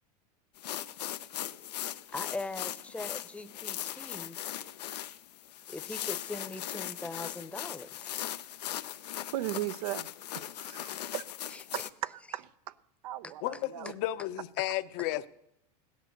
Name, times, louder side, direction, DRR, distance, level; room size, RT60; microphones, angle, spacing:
sound 1, 0.6-11.9, left 12 dB, 85° left, 0.7 m, -39 dB
voice 1, 2.1-4.4 5.7-8.1 11.5-11.9 13.2-13.3, left 2 dB, 5° left, 0.9 m, -41 dB
voice 2, 9.3-10.1 10.3-11.2 11.7-12.5 13.0-13.9, right 15 dB, 70° right, 0.7 m, -37 dB
voice 3, 13.4-15.3, left 15 dB, 55° left, 0.8 m, -33 dB
16.0 x 10.5 x 6.6 m
hypercardioid pair, 110°, 20 cm